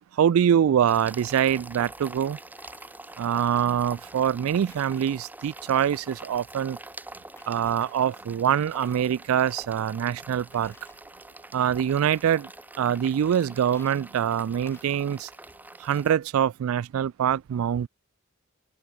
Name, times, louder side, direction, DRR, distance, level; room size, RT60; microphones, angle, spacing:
voice 1, 0.1-2.4 3.2-6.8 7.5-10.7 11.5-12.5 12.8-15.3 15.8-17.9, right 9 dB, 75° right, 0.3 m, -24 dB
sound 1, 0.9-16.2, right 2 dB, 10° right, 0.8 m, -45 dB
Coin (dropping), 1.6-4.4 4.7-7.1 7.4-9.2 9.5-11.0 11.5-11.6 12.0-12.6 12.9-15.4, left 2 dB, 10° left, 3.8 m, -58 dB
head